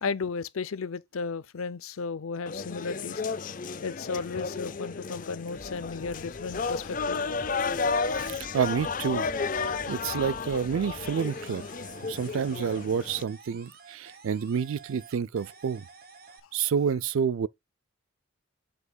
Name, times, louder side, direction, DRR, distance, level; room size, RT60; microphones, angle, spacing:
voice 1, 0.0-3.2 3.8-7.2, left 5 dB, 85° left, 0.6 m, -34 dB
sound 1, 2.5-13.2, left 4 dB, 40° left, 0.4 m, -33 dB
sound 2, 5.5-11.1, equal, ahead, 1.0 m, -48 dB
voice 2, 8.1-9.3 9.5-11.7 12.0-15.9 16.5-17.5, right 7 dB, 75° right, 0.4 m, -29 dB
sound 3, 11.2-13.0 13.3-16.4, right 5 dB, 45° right, 1.2 m, -51 dB
8.1 x 7.3 x 2.3 m
head